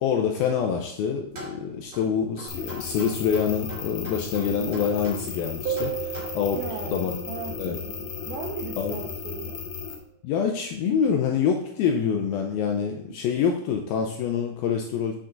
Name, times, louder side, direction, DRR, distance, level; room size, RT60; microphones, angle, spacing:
voice 1, 0.0-6.6 6.9-7.1 7.6-7.8 8.8-9.0 10.2-15.2, left 7 dB, 80° left, 3 dB, 2.1 m, -26 dB
sound 1, 1.3-6.2, right 2 dB, 30° right, 1.9 m, -42 dB
sound 2, 2.5-10.0, left 6 dB, 65° left, 2.3 m, -35 dB
sound 3, 5.7-8.9, right 11 dB, 65° right, 2.4 m, -36 dB
voice 2, 6.5-9.6 12.6-13.2, right 6 dB, 85° right, 1 dB, 1.7 m, -38 dB
7.6 x 6.8 x 3.9 m, 0.69 s
omnidirectional pair, 4.9 m